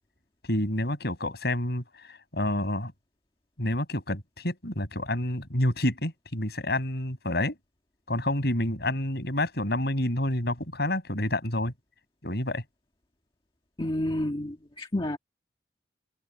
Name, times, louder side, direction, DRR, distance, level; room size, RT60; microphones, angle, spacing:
voice 1, 0.5-2.9 3.6-7.6 8.1-11.7 12.2-12.6, left 1 dB, 60° left, 7.4 m, -28 dB
voice 2, 13.8-15.2, left 1 dB, 30° left, 1.6 m, -30 dB
head